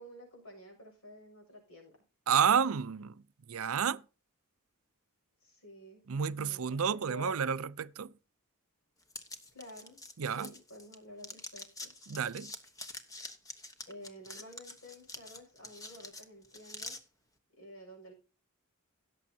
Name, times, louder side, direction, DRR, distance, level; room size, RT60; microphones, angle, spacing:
voice 1, 0.0-1.9 5.4-6.0 6.4-7.4 9.5-10.0 10.3-11.9 13.9-17.0 17.6-18.1, equal, 65° left, 6.4 m, -50 dB
voice 2, 2.3-4.0 6.1-8.1 10.2-10.5 12.1-12.5, right 7 dB, 70° right, 0.5 m, -30 dB
sound 1, 9.1-10.9 11.2-17.0, left 2 dB, 15° left, 1.1 m, -46 dB
17.0 x 7.1 x 2.8 m
head